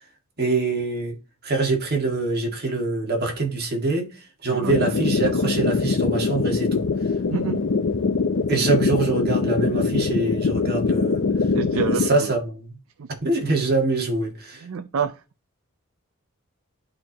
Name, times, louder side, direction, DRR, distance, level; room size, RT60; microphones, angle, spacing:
voice 1, 0.4-1.1 1.4-4.1 4.4-6.8 8.5-11.3 11.7-12.7 13.2-14.6, right 3 dB, 45° right, 1.8 m, -24 dB
sound 1, 4.7-12.1, left 4 dB, 55° left, 0.5 m, -23 dB
voice 2, 7.3-7.7 11.5-12.4 13.0-13.1 14.6-15.2, right 6 dB, 65° right, 0.4 m, -28 dB
11.0 x 4.4 x 2.9 m
head